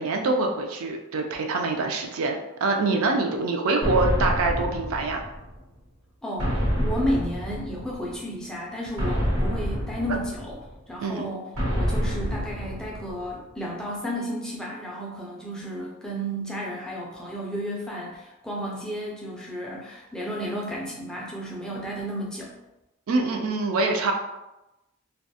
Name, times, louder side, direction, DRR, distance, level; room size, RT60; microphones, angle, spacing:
voice 1, 0.0-5.2 11.0-11.2 23.1-24.1, right 3 dB, 75° right, 3 dB, 0.4 m, -25 dB
sound 1, 3.8-5.6 6.4-8.1 9.0-10.8 11.6-13.3, equal, 90° right, 1.0 m, -27 dB
voice 2, 6.2-10.6 10.9-22.5, equal, 5° left, -4 dB, 0.3 m, -32 dB
2.3 x 2.2 x 2.7 m, 0.98 s
head